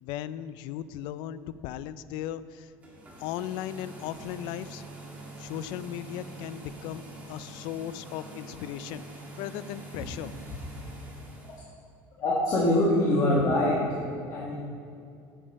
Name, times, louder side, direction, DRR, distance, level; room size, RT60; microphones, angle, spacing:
voice 1, 0.0-2.7 3.2-4.8 5.4-7.0 7.3-10.3, left 11 dB, 60° left, 15 dB, 0.4 m, -37 dB
sound 1, 2.7-11.6, right 2 dB, 15° right, 1.5 m, -45 dB
voice 2, 12.2-14.6, left 1 dB, 35° left, -5 dB, 1.5 m, -24 dB
8.6 x 7.1 x 5.4 m, 2.5 s
cardioid pair, 165°, 9 cm